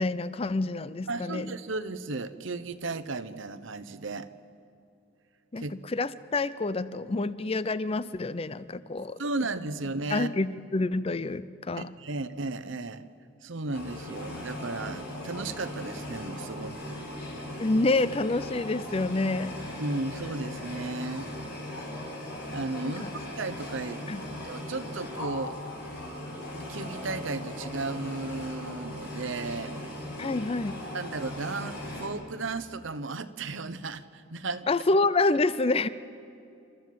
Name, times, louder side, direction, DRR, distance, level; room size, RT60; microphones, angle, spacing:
voice 1, 0.0-1.5 5.5-9.2 10.1-11.9 17.6-19.5 22.8-23.1 24.1-24.2 30.2-30.8 34.7-35.9, left 2 dB, 30° left, 16 dB, 0.5 m, -27 dB
voice 2, 1.1-4.3 5.6-5.7 9.2-10.3 11.8-13.0 13.4-17.0 19.8-21.3 22.5-23.0 23.4-25.6 26.6-29.9 30.9-34.7, right 3 dB, 70° right, 13 dB, 0.9 m, -35 dB
sound 1, 13.7-32.1, left 1 dB, 55° left, 7.3 m, -38 dB
29.5 x 14.0 x 7.7 m, 2.6 s
head